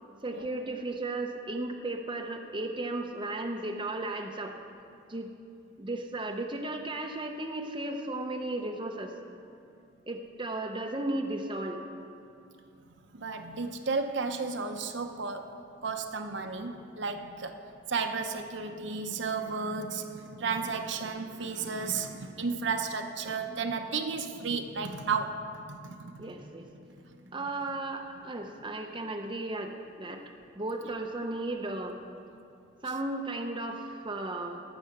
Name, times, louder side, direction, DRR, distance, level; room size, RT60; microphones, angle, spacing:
voice 1, 0.2-4.5 5.1-5.3 5.8-9.1 10.1-11.8 26.2-26.6 27.3-30.2 30.6-32.0 32.8-34.6, right 2 dB, 25° right, 2 dB, 0.7 m, -35 dB
voice 2, 13.1-15.5 15.8-17.6 17.9-26.2, right 4 dB, 60° right, 6 dB, 0.8 m, -33 dB
18.5 x 7.0 x 6.6 m, 2.6 s
head